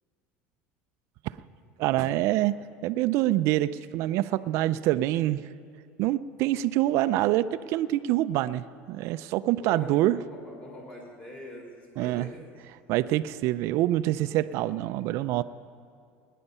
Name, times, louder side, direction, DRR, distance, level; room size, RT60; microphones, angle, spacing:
voice 1, 1.8-2.6 2.8-5.5 6.0-10.2 12.0-12.3 12.9-15.4, right 15 dB, 60° right, 13 dB, 0.4 m, -26 dB
voice 2, 9.6-12.4, equal, 25° left, 0 dB, 3.8 m, -43 dB
19.0 x 10.0 x 5.5 m, 2.3 s
cardioid pair, 135°, 5 cm